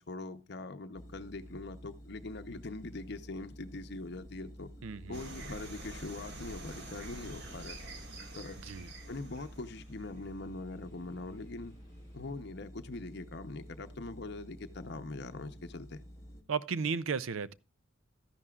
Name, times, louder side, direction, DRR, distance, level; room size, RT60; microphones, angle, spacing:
voice 1, 0.0-4.7 5.1-7.8 8.3-8.6 9.1-11.7 12.1-16.0, left 2 dB, 55° left, 0.8 m, -42 dB
sound 1, 0.9-16.4, equal, 15° left, 1.3 m, -51 dB
voice 2, 4.8-5.2 8.6-8.9 16.5-17.5, right 5 dB, 85° right, 0.5 m, -34 dB
sound 2, 5.1-10.2, right 2 dB, 55° right, 1.8 m, -47 dB
sound 3, 8.5-15.6 16.0-16.4, equal, 30° right, 5.1 m, -67 dB
13.5 x 11.0 x 2.4 m
head